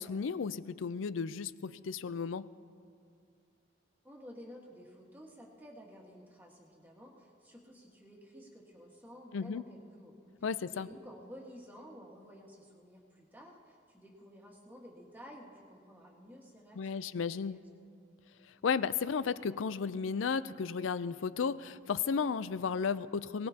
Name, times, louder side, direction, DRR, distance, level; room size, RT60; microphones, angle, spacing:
voice 1, 0.0-2.5 9.3-9.6 10.4-10.9 16.8-17.6 18.6-23.5, left 6 dB, 85° left, 16 dB, 0.4 m, -34 dB
voice 2, 4.0-10.1 10.4-17.1 17.3-17.6, equal, 10° right, -1 dB, 1.6 m, -53 dB
22.5 x 18.0 x 2.8 m, 2.4 s
head